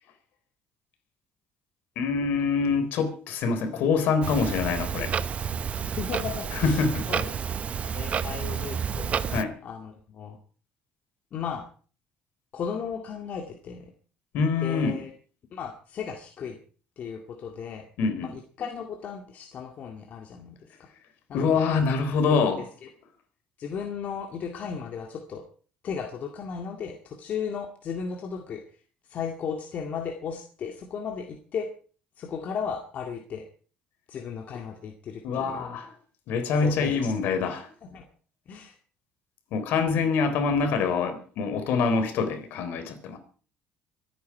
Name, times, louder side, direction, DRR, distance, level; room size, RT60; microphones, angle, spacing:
voice 1, 2.0-5.2 6.5-7.1 9.3-9.6 14.3-15.0 18.0-18.3 21.3-22.7 35.2-35.9 36.3-37.7 39.5-43.2, left 5 dB, 70° left, 8 dB, 3.8 m, -25 dB
Clock, 4.2-9.4, right 7 dB, 40° right, 0.9 m, -30 dB
voice 2, 5.9-7.3 7.9-9.2 9.6-10.4 11.3-11.6 12.5-13.9 14.6-15.1 15.5-16.6 17.0-17.8 18.2-20.7 21.3-21.6 22.3-22.4 23.6-25.4 25.8-28.6 29.1-31.7 32.2-33.5 34.1-35.6 36.6-37.1 37.9-38.0 38.5-38.8, left 6 dB, 50° left, 3 dB, 2.1 m, -35 dB
24.5 x 9.7 x 4.7 m, 0.41 s
cardioid pair, 105°, 3 cm